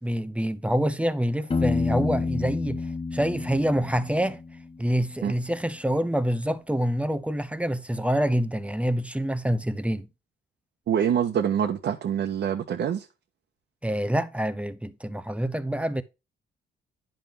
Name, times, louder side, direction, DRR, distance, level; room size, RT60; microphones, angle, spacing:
voice 1, 0.0-4.4 4.8-10.1 13.8-16.0, equal, 5° right, 0.9 m, -26 dB
Piano, 1.5-5.2, left 4 dB, 30° left, 1.1 m, -29 dB
voice 2, 10.9-13.1, right 8 dB, 60° right, 1.3 m, -25 dB
10.5 x 5.7 x 3.4 m
cardioid pair, 90°, 20 cm